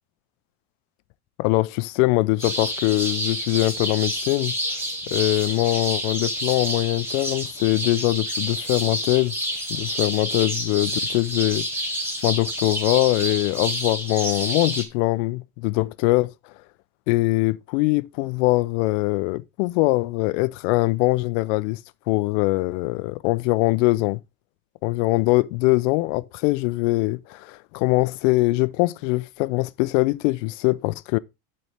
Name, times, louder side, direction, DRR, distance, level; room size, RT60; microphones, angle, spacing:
voice 1, 1.4-4.5 5.1-9.3 9.7-11.6 12.2-16.3 17.1-21.8 22.1-24.2 24.8-31.2, left 21 dB, 55° left, 0.5 m, -22 dB
sound 1, 2.4-14.8, equal, 5° right, 0.4 m, -29 dB
10.5 x 4.3 x 3.3 m
supercardioid pair, 160°, 46 cm